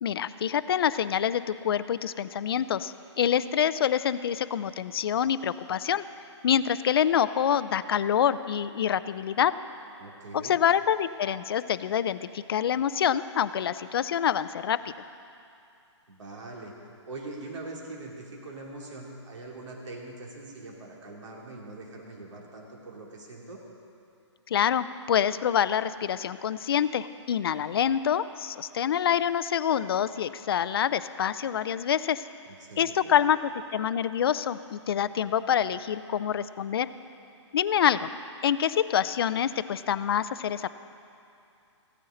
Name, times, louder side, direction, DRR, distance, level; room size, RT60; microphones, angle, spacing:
voice 1, 0.0-6.0 6.4-9.5 10.3-14.9 24.5-32.2 32.8-33.4 33.7-36.9 37.5-38.1 38.4-40.7, left 9 dB, 55° left, 15 dB, 0.4 m, -26 dB
voice 2, 10.0-10.6 16.1-16.7 17.1-23.6 32.5-33.2, right 2 dB, 75° right, -2 dB, 3.1 m, -42 dB
16.5 x 13.5 x 3.9 m, 2.6 s
hypercardioid pair, 165°, 15 cm